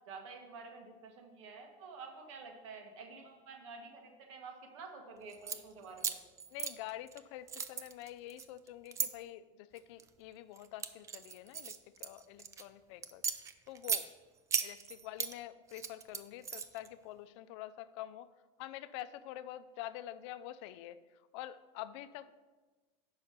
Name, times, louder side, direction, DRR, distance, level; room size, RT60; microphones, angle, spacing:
voice 1, 0.1-6.2, right 4 dB, 90° right, 3 dB, 1.5 m, -49 dB
sound 1, 5.3-5.6 6.0-7.2 7.5-9.1 9.8-10.1 10.6-12.6 13.0-14.0 14.5-15.3 15.7-16.9, right 7 dB, 20° right, 0.4 m, -36 dB
voice 2, 6.5-11.7 12.0-13.2 13.7-14.1 14.6-18.3 18.6-21.0 21.3-22.3, left 13 dB, 70° left, 13 dB, 0.5 m, -46 dB
5.8 x 5.6 x 6.6 m, 1.3 s
supercardioid pair, 150°, 15 cm